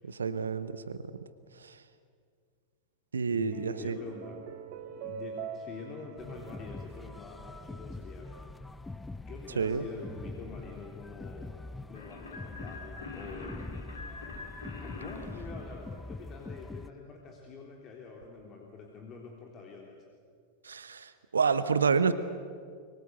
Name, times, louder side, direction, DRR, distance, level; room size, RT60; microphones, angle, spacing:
voice 1, 0.0-1.0 1.6-1.8 3.1-4.0 9.6-9.8 20.6-22.1, right 5 dB, 70° right, 13 dB, 1.0 m, -29 dB
voice 2, 3.3-4.4 4.9-8.5 9.2-11.5 11.9-13.6 14.8-20.0, left 4 dB, 30° left, 0 dB, 3.4 m, -46 dB
sound 1, 3.3-7.8, right 6 dB, 45° right, 2.0 m, -45 dB
sound 2, 6.2-16.9, left 2 dB, 10° left, 0.7 m, -44 dB
sound 3, 11.9-16.4, left 3 dB, 70° left, 4.2 m, -45 dB
24.5 x 23.5 x 8.0 m, 2.1 s
figure-of-eight pair, 90°, 0 cm